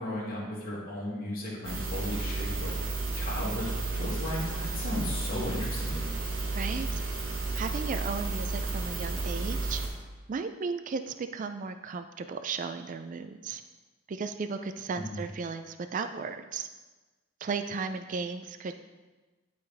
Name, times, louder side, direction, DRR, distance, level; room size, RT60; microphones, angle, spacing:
voice 1, 0.0-2.7 3.2-6.2 15.0-15.2, left 1 dB, 45° left, -6 dB, 1.9 m, -35 dB
sound 1, 1.6-9.9, right 3 dB, 65° right, 1.3 m, -32 dB
voice 2, 6.5-7.0 7.6-9.8 10.3-13.6 14.1-16.7 17.4-18.8, right 5 dB, 40° right, 8 dB, 0.3 m, -35 dB
11.0 x 3.9 x 3.4 m, 1.2 s
head